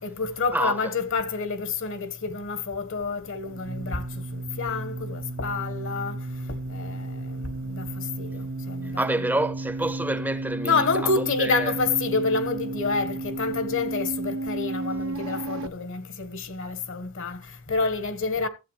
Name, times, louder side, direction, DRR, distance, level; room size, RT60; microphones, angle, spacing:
voice 1, 0.0-9.0 10.6-18.5, left 4 dB, 65° left, 1.5 m, -28 dB
sound 1, 2.8-15.7, right 2 dB, 65° right, 0.6 m, -33 dB
voice 2, 8.8-11.7, right 1 dB, 10° right, 0.6 m, -28 dB
15.5 x 8.0 x 3.2 m
head